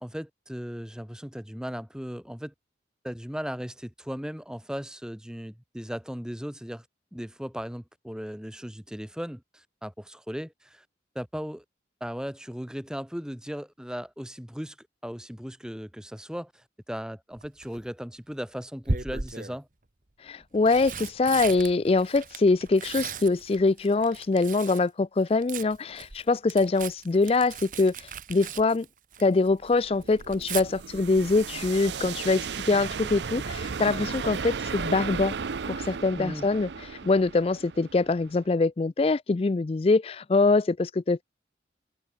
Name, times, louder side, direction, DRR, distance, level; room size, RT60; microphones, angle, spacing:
voice 1, 0.0-2.5 3.0-6.8 7.1-10.8 11.1-11.6 12.0-19.7 36.2-36.5, equal, 5° right, 1.2 m, -37 dB
Tearing, 17.4-17.8 18.8-19.6 20.4-24.9 25.2-29.5 29.8-30.6 32.5-32.8 33.1-33.2, right 4 dB, 45° right, 1.4 m, -37 dB
voice 2, 20.2-27.9 28.3-28.9 29.2-35.3 35.6-36.7 37.0-41.2, left 3 dB, 30° left, 0.3 m, -24 dB
sound 1, 29.5-38.4, right 5 dB, 75° right, 0.6 m, -35 dB
open air
head